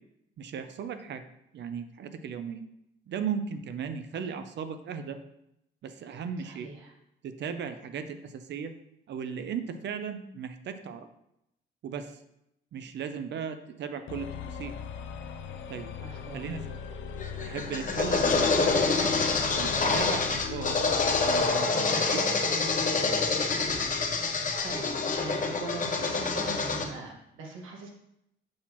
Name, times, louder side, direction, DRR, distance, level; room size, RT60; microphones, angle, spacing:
voice 1, 0.4-1.2 1.5-2.6 3.1-5.2 5.8-6.7 7.2-8.7 9.1-11.1 11.8-12.1 12.7-14.7 15.7-15.9 16.3-16.8 17.4-19.3 19.5-20.8 21.2-22.3, right 7 dB, 60° right, 10 dB, 0.7 m, -36 dB
voice 2, 6.4-6.9 16.0-16.5 23.6-24.3 24.6-27.9, right 2 dB, 90° right, 0 dB, 1.5 m, -41 dB
sound 1, 14.1-21.6, left 7 dB, 75° left, 0.6 m, -39 dB
sound 2, 17.2-26.9, left 4 dB, 40° left, 1.0 m, -27 dB
6.4 x 5.8 x 3.0 m, 0.79 s
cardioid pair, 90°, 20 cm